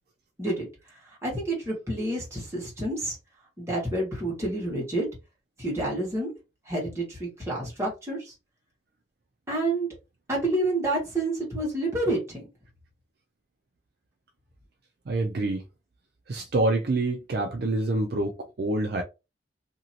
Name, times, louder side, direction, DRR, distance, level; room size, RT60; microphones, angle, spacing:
voice 1, 1.0-3.2 3.6-5.1 5.6-6.3 6.6-8.3 9.5-9.9 10.3-12.4, right 1 dB, 15° right, 1.4 m, -29 dB
voice 2, 15.1-15.6 16.3-19.0, right 2 dB, 55° right, 0.4 m, -26 dB
2.9 x 2.7 x 2.7 m
head